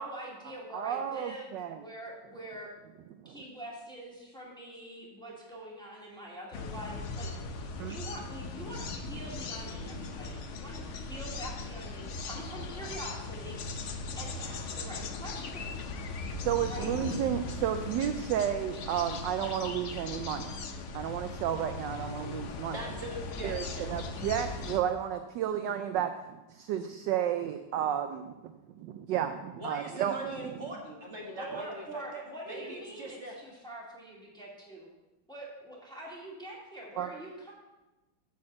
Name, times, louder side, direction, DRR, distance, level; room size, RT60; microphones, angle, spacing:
voice 1, 0.0-2.7 3.2-15.9 16.7-17.2 31.4-34.9 35.3-37.5, right 1 dB, ahead, -4 dB, 2.0 m, -44 dB
voice 2, 0.7-1.8 3.2-3.4 7.8-8.0 16.4-20.5 20.9-22.8 23.4-26.1 26.5-28.5 28.8-30.1 37.0-37.1, right 10 dB, 75° right, 8 dB, 1.1 m, -32 dB
sound 1, 6.5-24.8, left 3 dB, 70° left, 0.7 m, -39 dB
voice 3, 22.7-24.0 29.6-33.4, right 1 dB, 35° right, -1 dB, 1.7 m, -41 dB
9.3 x 4.5 x 7.5 m, 1.1 s
omnidirectional pair, 2.2 m